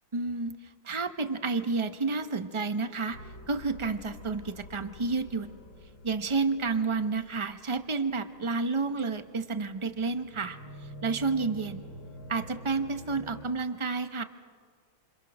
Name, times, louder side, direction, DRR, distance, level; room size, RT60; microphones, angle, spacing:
voice 1, 0.1-3.2 3.5-5.6 6.0-11.9 12.3-14.2, right 4 dB, 40° right, 9 dB, 0.4 m, -30 dB
sound 1, 3.1-13.5, left 1 dB, 80° left, 2.2 m, -48 dB
28.5 x 27.0 x 6.1 m, 2.1 s
omnidirectional pair, 2.1 m